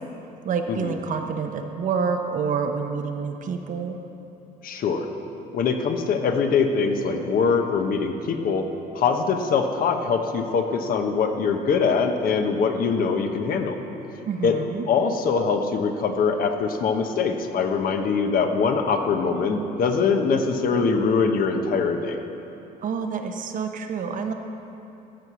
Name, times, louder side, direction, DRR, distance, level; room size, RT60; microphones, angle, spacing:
voice 1, 0.4-4.0 14.2-14.8 22.8-24.3, right 5 dB, 50° right, 5 dB, 0.9 m, -28 dB
voice 2, 4.6-5.1 5.5-8.7 8.9-13.8 14.4-14.6 14.9-22.2, left 5 dB, 55° left, 5 dB, 0.9 m, -23 dB
14.0 x 4.7 x 6.9 m, 2.9 s
cardioid pair, 110°, 17 cm